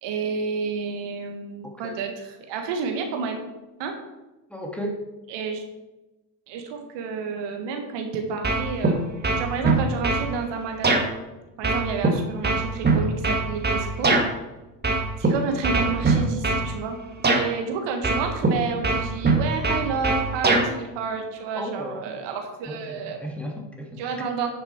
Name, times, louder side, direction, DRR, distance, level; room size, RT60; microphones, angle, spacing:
voice 1, 0.0-3.4 3.8-4.0 5.3-5.6 6.5-9.0 9.4-11.1 11.6-14.1 15.2-17.0 17.3-23.2 24.0-24.5, right 5 dB, 60° right, 4 dB, 1.7 m, -30 dB
voice 2, 4.5-5.0 21.5-22.0 22.7-24.3, equal, 5° left, 0 dB, 2.2 m, -35 dB
sound 1, 8.4-8.9 9.2-10.3 10.8-11.0 11.6-14.3 14.8-15.3 15.6-16.7 17.2-17.4 18.0-18.5 18.8-20.7, right 3 dB, 20° right, 2.0 m, -21 dB
10.0 x 6.8 x 4.5 m, 1.1 s
hypercardioid pair, 65°, 48 cm